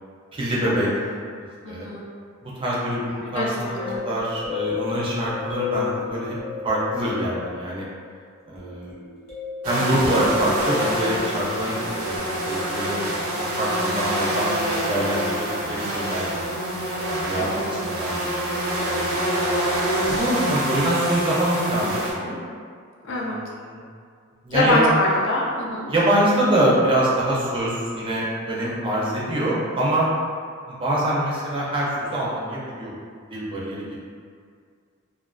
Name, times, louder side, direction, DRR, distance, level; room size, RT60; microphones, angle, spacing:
voice 1, 0.3-0.9 1.7-1.9 2.4-6.4 6.6-7.8 8.5-8.9 9.6-11.7 12.1-13.1 13.6-14.5 14.9-16.8 17.2-18.3 19.0-19.5 20.1-22.4 23.1-23.8 24.4-25.0 25.9-30.1 30.7-32.9 33.3-34.0, right 1 dB, 25° right, -6 dB, 0.4 m, -25 dB
voice 2, 1.6-2.0 3.3-4.0 17.4-17.7 23.0-23.4 24.5-25.9, left 2 dB, 60° left, -4 dB, 0.5 m, -24 dB
sound 1, 3.8-8.0 8.6-12.2, left 7 dB, 30° left, 0.8 m, -33 dB
sound 2, 9.6-22.1, right 1 dB, 90° right, 0.5 m, -26 dB
2.4 x 2.3 x 2.2 m, 2.1 s
head